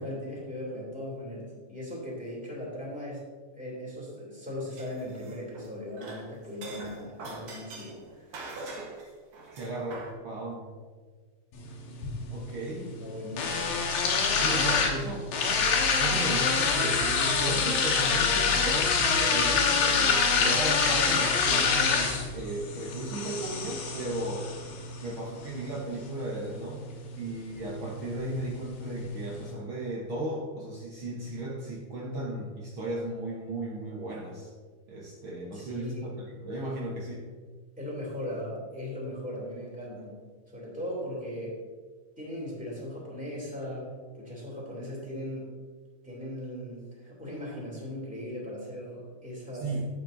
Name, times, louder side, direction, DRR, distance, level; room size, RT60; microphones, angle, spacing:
voice 1, 0.0-3.2 3.6-8.4 12.7-13.7 35.5-36.2 37.8-40.2 40.5-41.5 42.2-43.9 44.1-45.5 46.0-49.7, left 1 dB, 5° right, -5 dB, 2.2 m, -38 dB
sound 1, 4.7-5.7 6.0-10.1, right 3 dB, 55° right, 1.9 m, -43 dB
voice 2, 9.5-10.7 12.3-12.8 14.4-15.3 15.9-24.5 25.0-26.8 27.2-34.5 34.9-37.2 49.6-49.9, right 1 dB, 80° right, -4 dB, 1.1 m, -35 dB
sound 2, 11.5-29.5, left 5 dB, 85° left, 3.0 m, -27 dB
11.5 x 8.4 x 2.7 m, 1.5 s
omnidirectional pair, 4.0 m